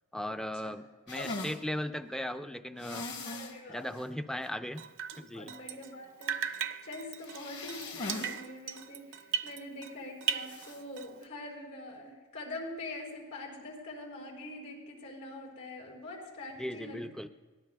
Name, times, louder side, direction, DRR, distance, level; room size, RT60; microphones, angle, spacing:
voice 1, 0.1-3.1 3.7-4.8 5.2-5.5 16.6-17.3, left 1 dB, 5° left, 8 dB, 0.4 m, -37 dB
sound 1, 1.1-1.6 2.8-3.6 3.9-4.0 4.4-4.5 7.2-8.4 8.7-8.8 10.4-10.8, left 2 dB, 50° left, 1.5 m, -40 dB
voice 2, 3.2-4.0 5.3-17.0, left 2 dB, 85° left, -1 dB, 4.9 m, -44 dB
Drip, 4.8-6.0 6.2-9.9 10.2-11.2, right 8 dB, 60° right, 0.5 m, -37 dB
23.0 x 18.5 x 2.3 m, 1.2 s
head